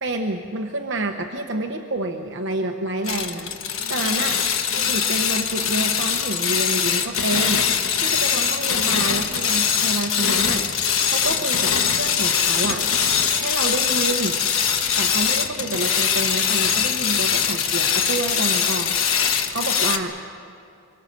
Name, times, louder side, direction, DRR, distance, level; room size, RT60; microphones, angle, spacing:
voice 1, 0.0-4.4 4.7-12.8 13.3-14.4 15.0-19.0 19.5-20.2, right 2 dB, 55° right, 3 dB, 1.0 m, -28 dB
sound 1, 3.0-20.0, left 7 dB, 65° left, 1.3 m, -22 dB
24.0 x 23.0 x 6.8 m, 2.4 s
head